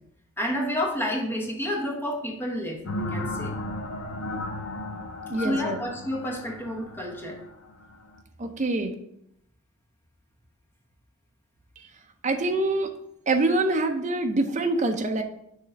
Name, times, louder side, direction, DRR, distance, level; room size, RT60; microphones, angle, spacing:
voice 1, 0.4-3.5 5.4-7.4, equal, 10° left, -1 dB, 1.0 m, -30 dB
sound 1, 2.8-8.2, left 1 dB, 80° left, 0.7 m, -35 dB
voice 2, 5.3-5.8 8.4-8.9 11.8-11.9 12.2-12.9 13.3-15.2, right 2 dB, 35° right, 5 dB, 0.6 m, -25 dB
6.5 x 3.2 x 5.1 m, 0.76 s
head